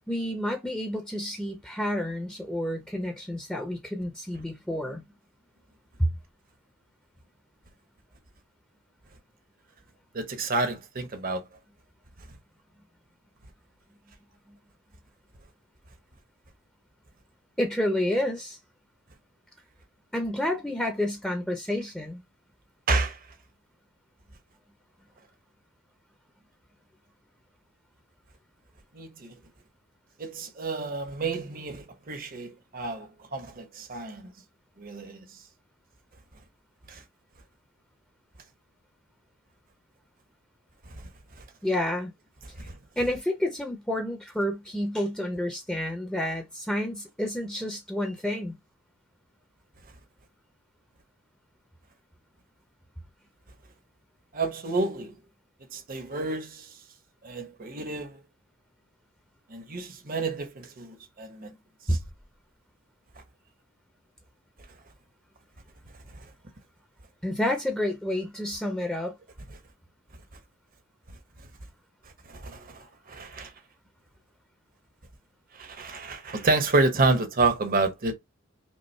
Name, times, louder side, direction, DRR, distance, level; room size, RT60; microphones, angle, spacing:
voice 1, 0.1-5.0 6.0-6.1 14.5-14.6 17.6-18.6 20.1-22.2 41.6-42.1 42.6-42.7 43.0-48.6 61.9-62.0 67.2-69.1, left 1 dB, 5° left, 0.7 m, -29 dB
voice 2, 10.1-11.4 22.9-23.2 28.9-29.3 30.2-34.3 34.8-35.2 36.9-37.0 40.9-41.1 42.6-42.8 54.3-55.1 55.7-56.7 57.2-58.2 59.5-61.5 61.9-62.0 72.3-73.5 75.5-78.1, right 3 dB, 45° right, 0.9 m, -29 dB
5.3 x 2.0 x 3.2 m
head